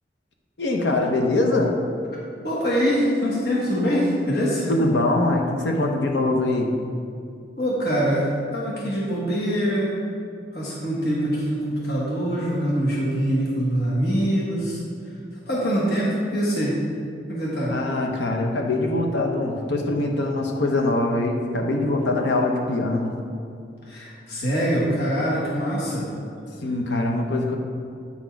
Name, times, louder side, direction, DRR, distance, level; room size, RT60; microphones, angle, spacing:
voice 1, 0.6-1.7 4.7-6.7 17.7-23.1 26.6-27.6, left 2 dB, 80° left, 2 dB, 0.8 m, -23 dB
voice 2, 2.4-4.7 7.6-9.9 10.5-14.8 15.5-16.8 17.3-17.7 23.8-26.1, equal, 60° left, -6 dB, 1.3 m, -24 dB
8.6 x 4.2 x 4.6 m, 2.5 s
head